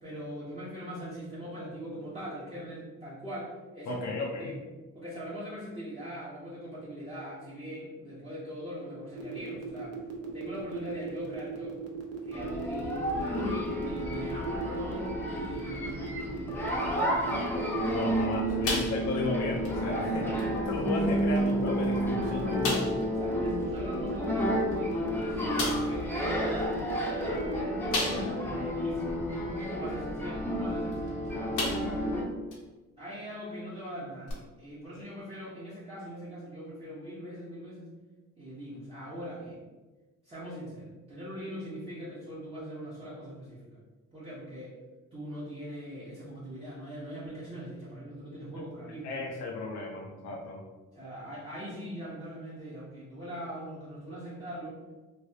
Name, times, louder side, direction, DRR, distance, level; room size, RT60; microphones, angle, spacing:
voice 1, 0.0-4.1 4.4-4.5 4.9-10.0 10.3-11.8 12.2-17.6 18.5-18.7 20.0-21.0 23.2-27.5 28.0-29.1 29.7-31.5 33.0-37.9 38.4-39.6 40.2-43.8 44.1-44.8 45.1-49.2 50.9-54.8, equal, 20° right, -9 dB, 0.9 m, -41 dB
voice 2, 3.9-4.5 17.9-20.2 20.7-23.0 49.0-50.6, left 3 dB, 65° left, -1 dB, 0.6 m, -34 dB
sound 1, 9.1-27.6, right 6 dB, 50° right, 0.7 m, -38 dB
sound 2, 12.3-32.2, equal, 5° left, 0.7 m, -31 dB
sound 3, 18.6-19.3 19.6-19.8 20.4-20.5 21.3-21.4 21.8-21.9 22.6-23.1 24.7-24.8 25.6-26.0 27.9-28.5 29.0-29.1 30.9-31.1 31.5-32.1 32.5-32.6 34.3-34.4, left 2 dB, 85° left, 0.9 m, -32 dB
3.2 x 2.7 x 2.7 m, 1.2 s
cardioid pair, 90°, 30 cm